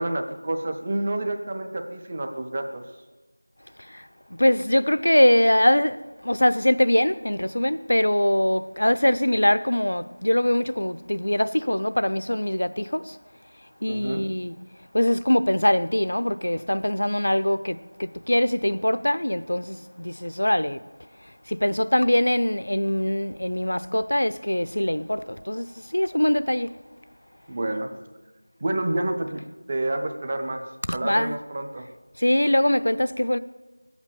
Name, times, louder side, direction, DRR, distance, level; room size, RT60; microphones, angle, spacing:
voice 1, 0.0-2.8 13.9-14.2 27.5-27.9 28.6-30.6 30.9-31.9, right 1 dB, 15° right, 0.5 m, -29 dB
voice 2, 4.4-6.0 6.3-13.0 13.8-14.5 14.9-19.8 20.0-20.8 21.6-25.6 25.9-26.7 30.9-31.3 32.2-33.4, left 1 dB, 65° left, 0.6 m, -22 dB
21.5 x 8.1 x 6.8 m
figure-of-eight pair, 180°, 0 cm